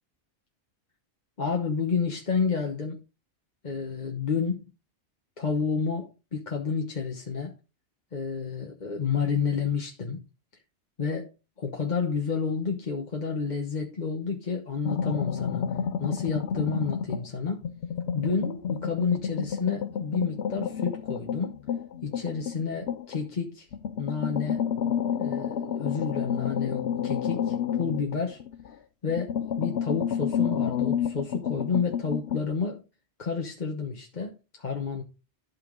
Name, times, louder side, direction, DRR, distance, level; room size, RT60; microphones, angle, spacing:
voice 1, 1.4-3.0 3.6-4.6 5.4-7.5 8.1-10.2 11.0-11.3 11.6-15.7 16.0-17.6 18.1-21.6 22.0-23.7 24.0-24.6 25.2-28.4 29.0-32.8 33.2-35.0, left 5 dB, 45° left, 1.2 m, -30 dB
sound 1, 14.8-17.3 17.6-23.2 23.7-28.7 29.1-32.4, left 8 dB, 75° left, 1.0 m, -30 dB
12.0 x 5.8 x 3.9 m
omnidirectional pair, 1.1 m